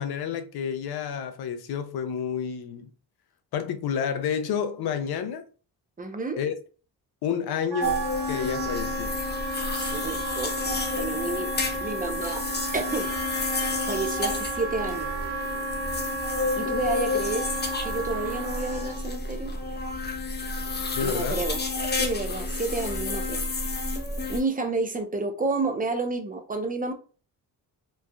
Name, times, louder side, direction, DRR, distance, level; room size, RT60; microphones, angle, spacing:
voice 1, 0.0-2.9 3.5-5.4 6.4-6.6 7.2-9.1 20.9-21.4, left 7 dB, 70° left, 0.6 m, -30 dB
voice 2, 6.0-6.4 9.7-11.5 11.8-12.5 12.7-13.2 13.9-15.1 16.6-17.5 17.8-19.5 21.0-21.6 21.9-23.4 24.3-26.9, right 3 dB, 20° right, 0.6 m, -30 dB
Wind instrument woodwind instrument, 7.7-19.0, right 2 dB, 75° right, 1.0 m, -33 dB
sound 1, 7.8-24.4, left 2 dB, 25° left, 0.6 m, -30 dB
3.1 x 2.3 x 2.2 m
cardioid pair, 70°, 39 cm